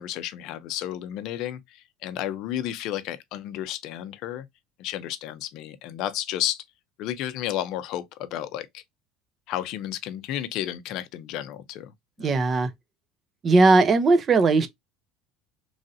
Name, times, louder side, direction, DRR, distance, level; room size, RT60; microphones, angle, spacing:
voice 1, 0.0-4.5 4.8-6.6 7.0-8.8 9.5-11.9 12.2-12.3, left 12 dB, 60° left, 0.5 m, -32 dB
voice 2, 12.2-12.7 13.4-14.7, right 3 dB, 30° right, 0.5 m, -18 dB
3.1 x 2.6 x 2.6 m
supercardioid pair, 125°, 0 cm